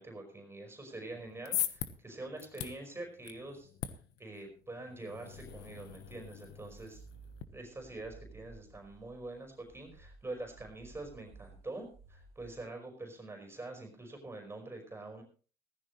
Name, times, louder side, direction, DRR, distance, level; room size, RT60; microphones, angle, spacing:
voice 1, 0.0-3.7 4.2-7.0 7.5-15.2, right 2 dB, 15° right, 3 dB, 5.0 m, -45 dB
sound 1, 1.1-7.4, left 12 dB, 85° left, 1.2 m, -42 dB
sound 2, 5.3-12.7, right 4 dB, 40° right, 2.3 m, -56 dB
17.0 x 14.5 x 3.2 m, 0.38 s
cardioid pair, 110°, 17 cm